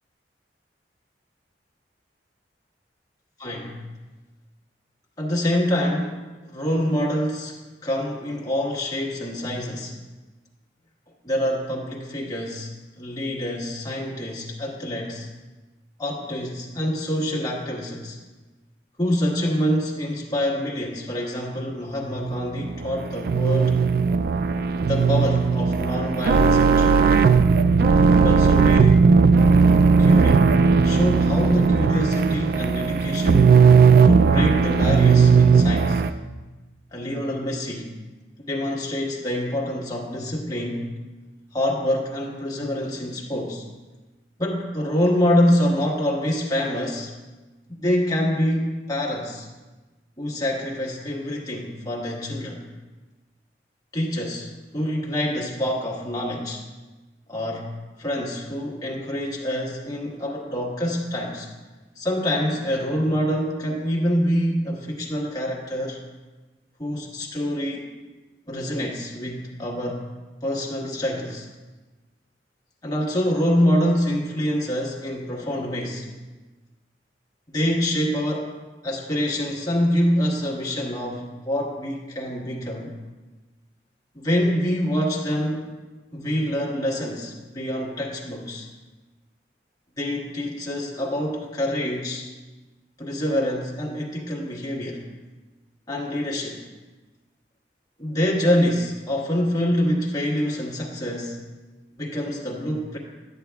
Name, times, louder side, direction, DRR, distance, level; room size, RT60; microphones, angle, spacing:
voice 1, 3.4-3.8 5.2-6.2 6.4-9.9 11.2-12.7 13.0-15.3 16.0-18.2 19.0-23.8 24.9-27.0 28.2-29.0 30.0-30.5 30.8-33.5 34.0-36.0 36.9-37.9 38.5-40.9 41.5-43.6 44.4-47.1 47.7-49.5 50.2-52.6 53.9-56.6 57.3-57.7 58.0-61.5 62.0-66.0 66.8-67.9 68.5-70.0 70.4-71.5 72.8-76.1 77.5-78.5 78.8-82.9 84.1-85.7 86.1-88.7 90.0-92.3 93.0-95.0 95.9-96.6 98.0-101.4 102.0-103.0, equal, 20° left, -3 dB, 1.4 m, -26 dB
sound 1, 22.2-36.1, right 5 dB, 55° right, 0.3 m, -17 dB
12.5 x 8.5 x 2.3 m, 1.2 s
head